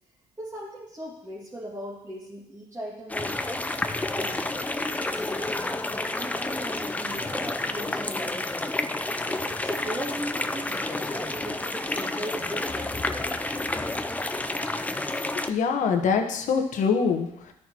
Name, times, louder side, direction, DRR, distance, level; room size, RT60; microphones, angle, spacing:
voice 1, 0.4-3.8 4.1-8.6 9.3-13.9, equal, 20° right, -7 dB, 2.1 m, -39 dB
sound 1, 3.1-15.5, left 2 dB, 10° left, 0.6 m, -30 dB
voice 2, 15.4-17.5, left 5 dB, 70° left, 5 dB, 1.2 m, -24 dB
13.5 x 6.3 x 3.0 m, 0.80 s
cardioid pair, 85°, 14 cm